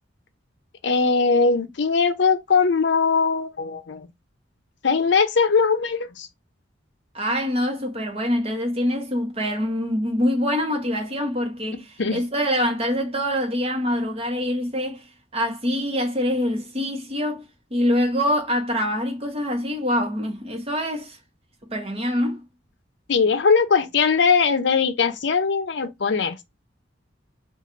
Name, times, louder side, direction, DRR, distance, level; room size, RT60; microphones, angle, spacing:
voice 1, 0.8-4.1 4.8-6.3 11.7-12.2 23.1-26.4, left 5 dB, 65° left, 0.6 m, -20 dB
voice 2, 7.1-15.1 15.3-17.4 17.7-21.2 21.7-22.4, equal, 30° right, 1.1 m, -25 dB
3.0 x 2.4 x 3.8 m
head